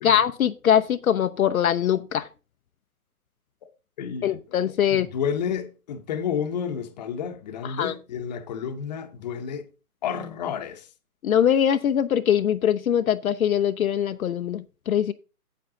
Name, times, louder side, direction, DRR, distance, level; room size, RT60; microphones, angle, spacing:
voice 1, 0.0-2.3 4.2-5.1 7.6-7.9 11.2-15.1, left 9 dB, 65° left, 0.7 m, -22 dB
voice 2, 4.0-4.4 4.9-9.7 10.0-10.9, left 7 dB, 30° left, 0.9 m, -30 dB
8.5 x 7.8 x 3.7 m
hypercardioid pair, 150°, 45 cm